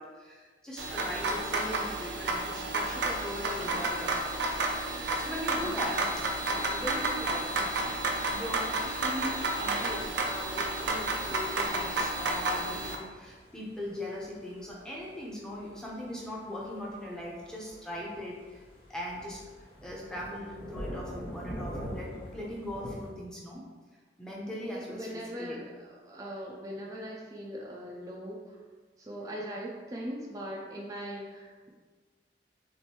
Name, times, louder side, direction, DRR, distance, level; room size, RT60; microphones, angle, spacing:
voice 1, 0.0-4.4 5.0-18.6 18.9-23.6 24.2-25.6, left 1 dB, 5° left, -5 dB, 0.8 m, -40 dB
sound 1, 0.8-12.9, right 2 dB, 70° right, 0.6 m, -31 dB
voice 2, 5.6-6.2 24.6-28.6 29.0-31.7, equal, 20° right, -3 dB, 0.5 m, -40 dB
sound 2, 7.9-23.1, equal, 30° left, 1.0 m, -47 dB
6.4 x 2.6 x 3.0 m, 1.4 s
head